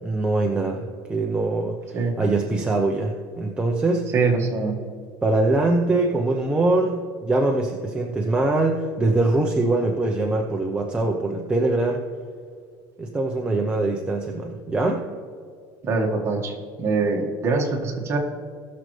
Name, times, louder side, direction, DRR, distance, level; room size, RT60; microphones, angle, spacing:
voice 1, 0.0-4.1 5.2-12.0 13.0-15.1, right 2 dB, 10° right, 0 dB, 0.7 m, -23 dB
voice 2, 4.1-4.8 15.8-18.2, right 4 dB, 30° right, 0 dB, 1.7 m, -23 dB
19.5 x 6.5 x 3.3 m, 2.1 s
cardioid pair, 145°, 9 cm